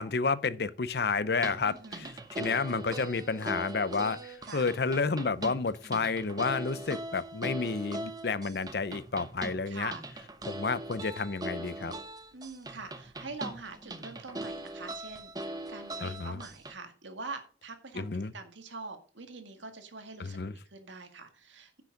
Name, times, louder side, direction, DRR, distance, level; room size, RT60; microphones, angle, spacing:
voice 1, 0.0-9.9 10.5-11.9 16.0-16.4 17.9-18.3 20.2-20.5, left 4 dB, 55° left, 0.6 m, -31 dB
sound 1, 1.3-16.7, right 1 dB, 20° right, 0.9 m, -41 dB
voice 2, 1.6-2.1 4.4-4.7 6.5-7.0 9.7-10.1 12.3-18.1 18.3-21.8, right 3 dB, 80° right, 1.9 m, -44 dB
10.0 x 6.1 x 5.2 m
head